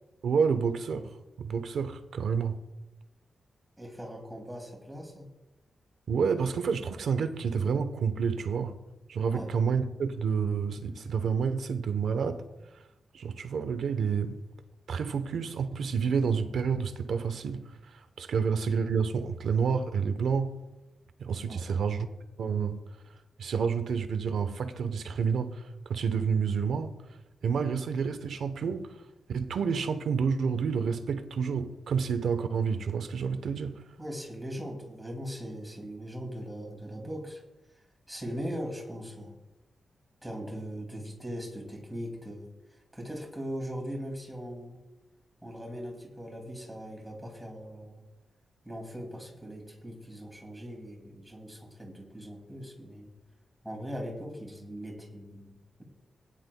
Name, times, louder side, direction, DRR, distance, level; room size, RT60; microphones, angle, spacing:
voice 1, 0.2-2.6 6.1-8.8 9.1-12.4 13.1-14.4 14.9-20.6 21.2-22.1 22.4-22.8 23.4-27.0 27.4-29.0 29.3-33.8, right 6 dB, 85° right, 0.9 m, -29 dB
voice 2, 3.8-5.3 9.3-9.5 21.5-22.0 34.0-37.4 38.1-39.4 40.2-42.5 42.9-44.8 45.4-48.0 48.6-53.1 53.6-55.8, equal, 5° right, 2.6 m, -40 dB
19.5 x 10.0 x 2.3 m
wide cardioid pair, 160°, 0 cm